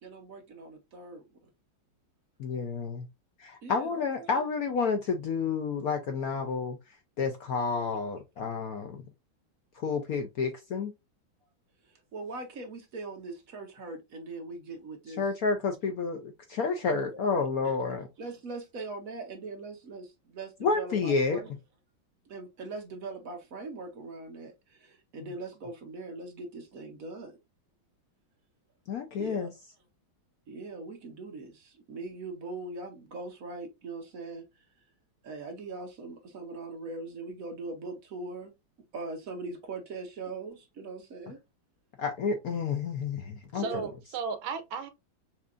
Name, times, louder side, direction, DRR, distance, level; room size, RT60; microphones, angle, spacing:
voice 1, 0.0-1.2 3.6-4.4 12.1-15.2 16.9-17.2 17.6-21.5 22.3-27.3 29.1-29.5 30.5-34.4 35.2-38.5 38.9-41.4 43.6-43.9, right 3 dB, 55° right, 1.0 m, -41 dB
voice 2, 2.4-3.1 3.4-6.8 7.2-9.0 9.8-10.9 15.1-18.1 20.6-21.4 28.9-29.5 42.0-43.8, left 5 dB, 65° left, 0.9 m, -30 dB
voice 3, 43.5-44.9, right 5 dB, 80° right, 1.5 m, -34 dB
5.8 x 2.7 x 2.4 m
omnidirectional pair, 2.2 m